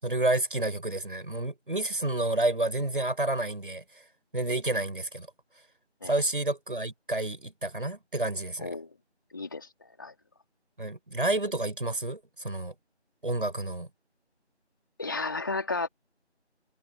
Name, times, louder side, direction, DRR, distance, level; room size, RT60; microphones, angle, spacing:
voice 1, 0.0-3.8 4.3-5.3 6.0-8.7 10.8-12.7 13.2-13.9, right 2 dB, 50° right, 7.7 m, -29 dB
voice 2, 8.6-8.9 9.3-10.1 15.0-15.9, left 3 dB, 20° left, 3.8 m, -33 dB
figure-of-eight pair, 170°, 34 cm